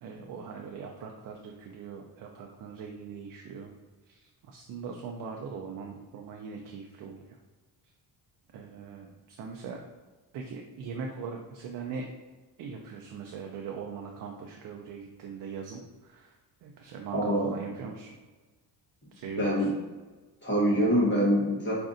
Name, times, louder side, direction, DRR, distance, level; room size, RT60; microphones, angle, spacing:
voice 1, 0.0-3.7 4.1-7.2 8.5-9.8 10.3-12.1 12.6-18.2 19.1-19.7, right 5 dB, 55° right, 1 dB, 0.5 m, -41 dB
voice 2, 17.1-17.5 19.4-19.7 20.4-21.7, equal, 25° left, -6 dB, 1.0 m, -24 dB
5.0 x 2.6 x 2.5 m, 1.3 s
cardioid pair, 130°, 41 cm